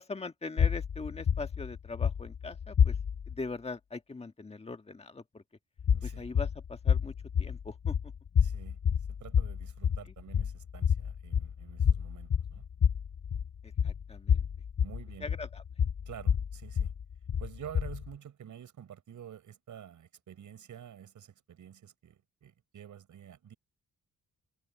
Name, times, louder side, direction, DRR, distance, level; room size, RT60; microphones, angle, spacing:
voice 1, 0.0-2.9 3.3-5.4 6.0-7.9 13.8-14.4 15.2-15.6, left 3 dB, 20° left, 1.5 m, -41 dB
sound 1, 0.6-3.4 5.8-18.1, left 7 dB, 35° left, 0.6 m, -29 dB
voice 2, 5.9-6.3 8.4-8.8 9.1-12.7 14.8-15.3 16.1-16.9 17.4-23.5, right 9 dB, 75° right, 6.5 m, -49 dB
cardioid pair, 125°, 31 cm